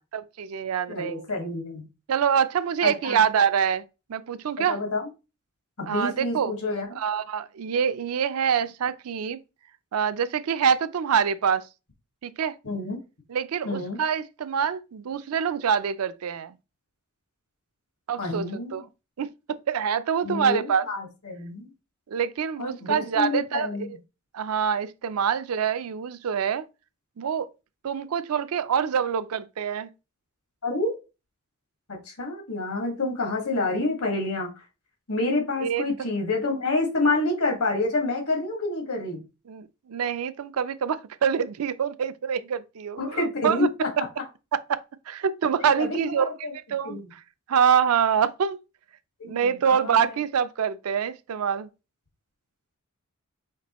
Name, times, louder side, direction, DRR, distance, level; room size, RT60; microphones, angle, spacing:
voice 1, 0.1-1.3 2.1-3.8 4.1-4.8 5.9-6.5 6.9-9.4 9.9-11.7 12.2-12.5 13.3-16.6 18.1-18.8 19.2-19.3 19.7-20.8 22.1-23.7 24.3-26.6 27.2-27.5 27.8-29.9 35.6-35.8 39.5-43.7 44.5-46.3 46.7-47.2 47.5-48.6 49.2-51.7, right 7 dB, 80° right, 0.4 m, -25 dB
voice 2, 0.9-1.8 2.8-3.2 4.7-5.1 5.8-6.9 12.6-13.0 13.6-14.0 18.2-18.8 20.2-21.7 22.6-23.9 30.6-31.0 31.9-34.6 35.1-39.2 43.0-43.9 45.6-46.5 46.8-47.0 49.2-50.2, left 2 dB, 80° left, 1.7 m, -28 dB
5.8 x 3.0 x 3.0 m
head